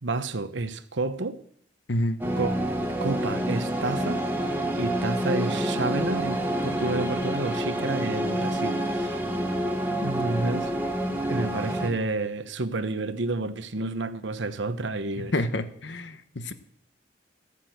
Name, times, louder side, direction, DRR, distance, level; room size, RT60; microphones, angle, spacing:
voice 1, 0.0-1.4 2.4-4.3 4.7-9.2 10.0-10.8 11.3-15.3, right 2 dB, 75° right, 0.9 m, -30 dB
voice 2, 1.9-2.2 15.2-16.5, left 1 dB, 70° left, 1.1 m, -28 dB
sound 1, 2.2-11.9, right 1 dB, 10° right, 1.5 m, -28 dB
14.0 x 8.6 x 7.8 m
head